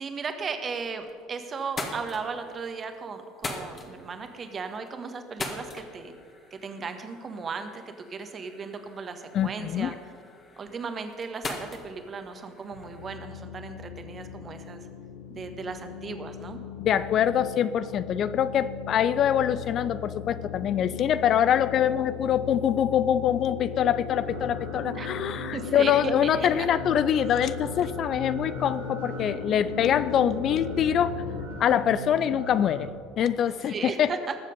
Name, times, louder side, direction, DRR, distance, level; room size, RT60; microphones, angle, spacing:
voice 1, 0.0-6.1 6.5-9.9 10.6-14.9 15.3-16.6 25.0-25.1 25.5-26.7 33.5-34.3, right 5 dB, 30° right, 7 dB, 1.4 m, -36 dB
sound 1, 0.7-1.2 1.6-13.2, left 3 dB, 30° left, 1.9 m, -42 dB
voice 2, 9.3-9.9 16.8-31.2 31.6-32.9 33.2-34.1, left 9 dB, 45° left, 15 dB, 0.4 m, -24 dB
sound 2, 12.7-31.5, left 8 dB, 70° left, 0.9 m, -38 dB
sound 3, 24.3-32.9, right 2 dB, 75° right, 1.7 m, -39 dB
20.5 x 7.4 x 5.4 m, 2.2 s
figure-of-eight pair, 65°, 0 cm